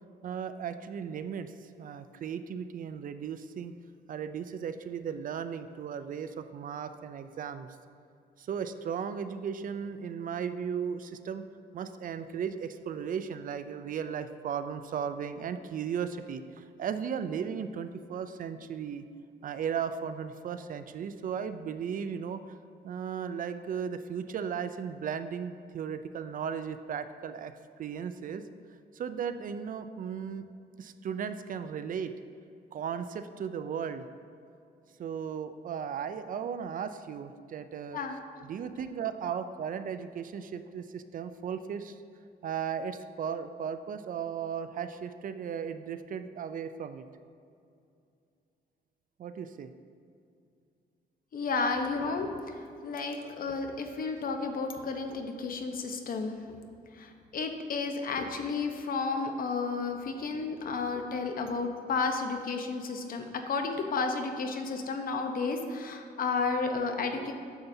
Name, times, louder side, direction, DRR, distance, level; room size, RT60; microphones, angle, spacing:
voice 1, 0.2-3.7 4.1-7.7 8.4-11.4 11.7-19.0 19.4-22.5 22.8-27.5 27.8-28.4 28.9-30.4 30.8-32.1 32.7-34.0 35.0-38.0 38.4-42.0 42.4-47.0 49.2-49.7, right 7 dB, 55° right, 10 dB, 0.4 m, -36 dB
voice 2, 51.3-56.6 56.9-67.3, left 4 dB, 55° left, 5 dB, 0.8 m, -32 dB
9.2 x 6.9 x 2.7 m, 2.5 s
cardioid pair, 125°, 17 cm